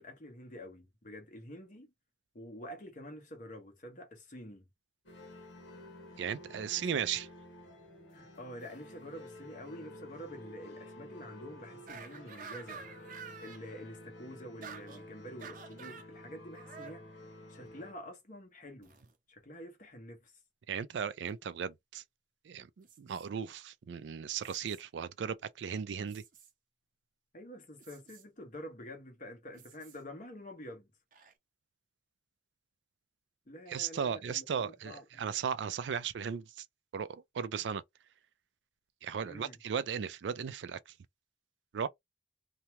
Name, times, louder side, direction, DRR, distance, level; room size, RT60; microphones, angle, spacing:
voice 1, 0.0-1.9 2.3-4.6 6.5-6.7 8.1-12.9 13.4-17.2 17.5-18.9 19.3-20.3 27.3-30.9 33.5-35.2 39.2-39.6, equal, 45° left, 1.1 m, -48 dB
sound 1, 5.1-17.9, left 1 dB, 85° left, 1.0 m, -51 dB
voice 2, 6.2-7.3 20.7-22.0 22.5-26.2 33.7-36.6 36.9-37.8 39.0-40.8 41.7-41.9, right 7 dB, 80° right, 0.4 m, -36 dB
sound 2, 11.9-13.6 14.6-15.0 15.4-16.1 16.5-17.0 18.8-19.1 21.3-21.4 22.8-23.3 24.4-24.8 26.1-26.5 27.8-28.2 29.5-30.0 31.1-31.3, right 6 dB, 50° right, 0.6 m, -49 dB
2.8 x 2.2 x 2.9 m
head